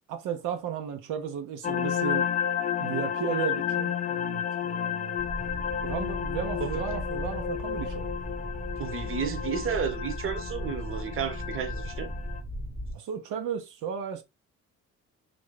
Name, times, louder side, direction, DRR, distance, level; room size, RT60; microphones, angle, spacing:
voice 1, 0.1-2.3 2.8-5.2 5.8-8.1 12.9-14.2, right 8 dB, 85° right, 0.6 m, -34 dB
sound 1, 1.6-12.4, left 9 dB, 25° left, 0.4 m, -32 dB
sound 2, 5.2-12.9, equal, 5° right, 0.8 m, -37 dB
voice 2, 8.8-12.1, right 6 dB, 45° right, 0.8 m, -32 dB
3.1 x 2.5 x 3.1 m
cardioid pair, 90°, 30 cm